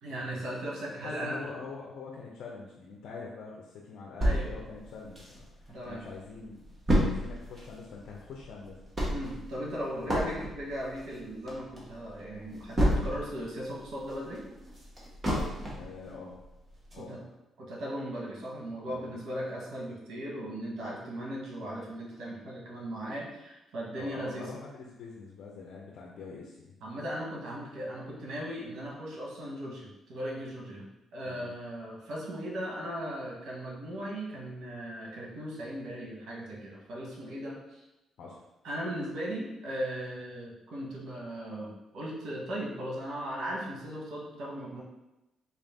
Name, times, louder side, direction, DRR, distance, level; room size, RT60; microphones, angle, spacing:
voice 1, 0.0-1.5 4.2-4.5 5.7-6.0 9.1-14.4 17.0-17.2 17.6-24.5 26.8-37.8 38.6-44.8, equal, 75° right, -3 dB, 1.1 m, -37 dB
voice 2, 1.0-5.5 5.8-6.7 7.0-8.7 10.0-10.2 15.7-16.4 16.9-17.2 18.8-19.1 24.0-26.7 31.3-31.5 38.2-38.4, left 4 dB, 75° left, -2 dB, 0.5 m, -44 dB
sound 1, 4.2-5.7 6.1-6.2 6.4-13.4 13.8-16.0 16.4-16.5 16.9-17.0, equal, 20° right, 1.1 m, -30 dB
4.2 x 2.4 x 3.4 m, 0.97 s
cardioid pair, 90°, 0 cm